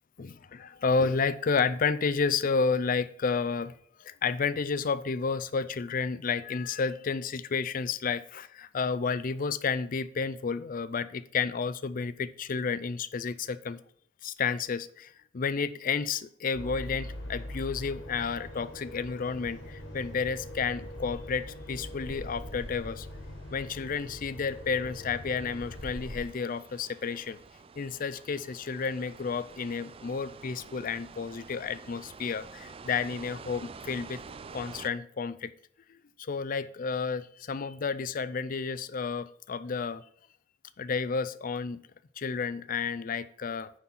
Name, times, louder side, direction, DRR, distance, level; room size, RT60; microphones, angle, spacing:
voice 1, 0.2-3.7 4.0-13.8 14.2-23.1 23.5-27.4 27.8-34.2 34.5-35.5 35.9-40.0 40.8-41.8 42.2-43.7, left 5 dB, 45° left, 15 dB, 0.4 m, -31 dB
sound 1, 16.5-26.2, left 1 dB, 75° left, 1.9 m, -42 dB
sound 2, 18.8-34.9, right 5 dB, 30° right, 0.3 m, -50 dB
9.4 x 4.2 x 5.8 m, 0.62 s
head